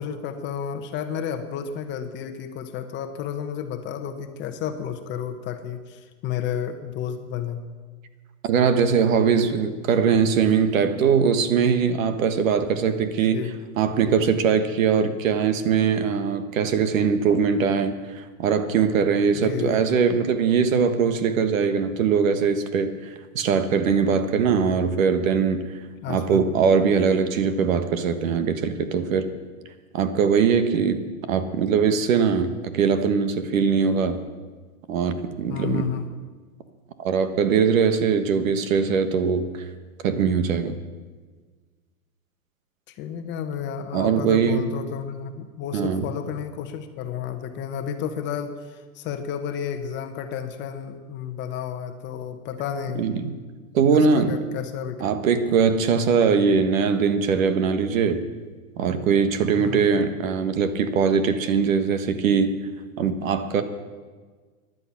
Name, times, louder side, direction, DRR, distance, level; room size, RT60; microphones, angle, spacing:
voice 1, 0.0-7.6 13.3-13.5 19.3-19.9 26.0-26.4 35.5-36.0 42.9-53.0 53.9-55.0 59.6-59.8, left 8 dB, 25° left, 7 dB, 1.0 m, -32 dB
voice 2, 8.4-13.5 13.8-22.9 23.3-25.7 26.1-29.3 29.9-31.0 31.3-34.2 34.9-35.9 37.0-39.6 40.0-40.8 43.9-44.7 45.7-46.0 52.9-53.3 53.7-54.4 55.0-58.2 58.8-62.5 63.0-63.6, right 6 dB, 70° right, 10 dB, 1.5 m, -21 dB
15.5 x 11.0 x 5.9 m, 1.4 s
hypercardioid pair, 140°, 42 cm